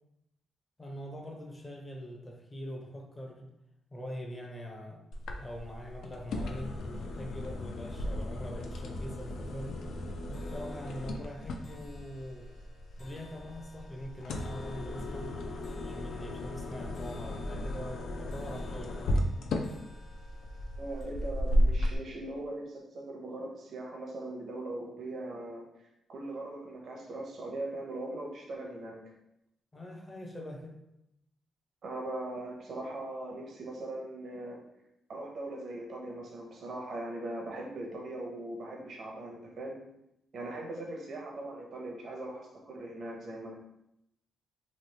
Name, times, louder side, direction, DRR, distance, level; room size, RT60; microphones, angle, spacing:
voice 1, 0.8-3.5 3.9-5.0 5.4-9.9 10.3-12.5 13.0-15.4 15.8-19.2 29.7-30.8, equal, 20° left, 0 dB, 0.6 m, -43 dB
sound 1, 5.1-22.0, left 1 dB, 75° left, 0.4 m, -35 dB
sound 2, 7.1-7.6 8.0-8.4 8.6-21.0, left 3 dB, 55° left, 1.0 m, -58 dB
voice 2, 20.8-25.7 26.1-29.0 31.8-34.6 35.1-39.8 40.3-43.6, right 2 dB, 55° right, -1 dB, 0.7 m, -40 dB
3.0 x 2.4 x 3.2 m, 0.83 s
cardioid pair, 110°, 0 cm